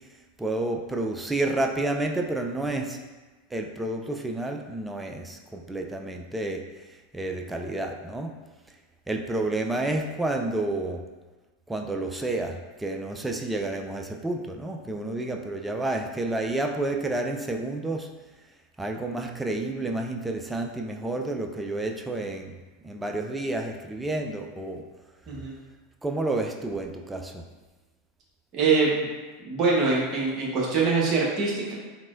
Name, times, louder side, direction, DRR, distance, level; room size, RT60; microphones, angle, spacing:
voice 1, 0.4-3.0 3.5-6.7 7.1-8.3 9.1-11.0 11.7-18.1 18.8-22.6 22.8-24.9 26.0-27.4, right 2 dB, 10° right, 3 dB, 0.3 m, -30 dB
voice 2, 28.5-29.0 29.4-31.7, right 4 dB, 40° right, -4 dB, 1.0 m, -24 dB
3.7 x 2.9 x 2.5 m, 1.2 s
figure-of-eight pair, 85°, 0 cm